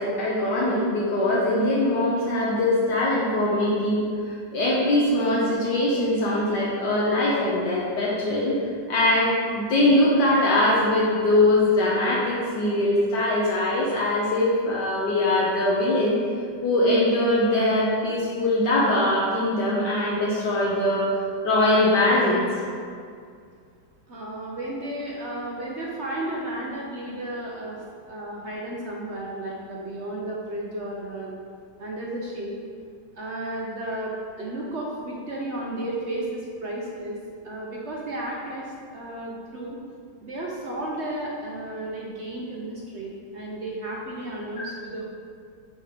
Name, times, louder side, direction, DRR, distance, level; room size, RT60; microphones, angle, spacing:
voice 1, 0.0-4.1 4.5-8.5 8.9-16.2 16.6-22.4, left 1 dB, 70° left, -6 dB, 1.5 m, -22 dB
voice 2, 24.1-31.3 31.8-32.6 33.1-37.2 37.4-39.8 40.2-45.1, right 1 dB, 55° right, -3 dB, 0.8 m, -33 dB
6.6 x 4.3 x 5.0 m, 2.2 s
omnidirectional pair, 2.0 m